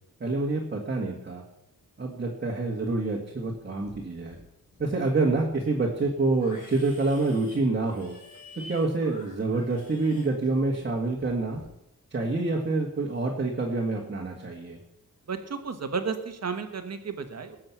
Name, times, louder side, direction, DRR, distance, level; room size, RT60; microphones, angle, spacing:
voice 1, 0.2-1.4 2.0-4.4 4.8-8.2 8.6-11.6 12.1-14.8, right 3 dB, 35° right, -1 dB, 1.8 m, -27 dB
Livestock farm animals working animals, 3.3-4.0 4.2-5.0 5.3-10.9 11.2-11.7, left 2 dB, 60° left, 4.8 m, -50 dB
voice 2, 15.3-17.6, right 5 dB, 50° right, 8 dB, 1.5 m, -33 dB
19.5 x 7.7 x 6.0 m, 0.83 s
wide cardioid pair, 145°, 33 cm